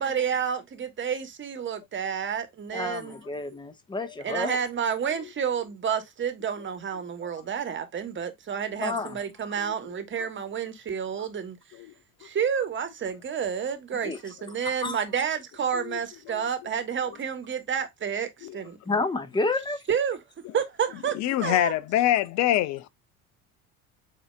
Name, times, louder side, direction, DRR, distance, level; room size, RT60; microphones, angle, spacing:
voice 1, 0.0-3.2 4.2-11.6 12.2-18.8 19.9-20.2 20.5-21.7, right 7 dB, 25° right, 1.4 m, -30 dB
voice 2, 2.7-4.6 8.8-9.2 14.0-14.2 14.6-15.0 18.9-19.8, left 3 dB, 10° left, 1.1 m, -30 dB
voice 3, 21.1-22.9, left 13 dB, 40° left, 0.6 m, -25 dB
8.0 x 2.8 x 2.2 m
figure-of-eight pair, 65°, 42 cm